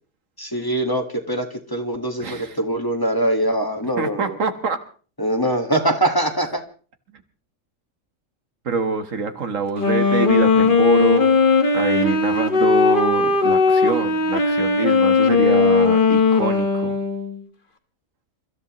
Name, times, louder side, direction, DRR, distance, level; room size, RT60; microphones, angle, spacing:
voice 1, 0.4-4.4 5.2-6.6, right 1 dB, 15° left, 3 dB, 1.6 m, -23 dB
voice 2, 2.2-2.6 4.0-4.8 8.6-11.4 11.7-17.0, right 4 dB, 70° right, 7 dB, 1.7 m, -25 dB
Wind instrument woodwind instrument, 9.7-17.4, left 4 dB, 40° left, 1.5 m, -18 dB
29.0 x 14.0 x 3.0 m, 0.40 s
omnidirectional pair, 1.4 m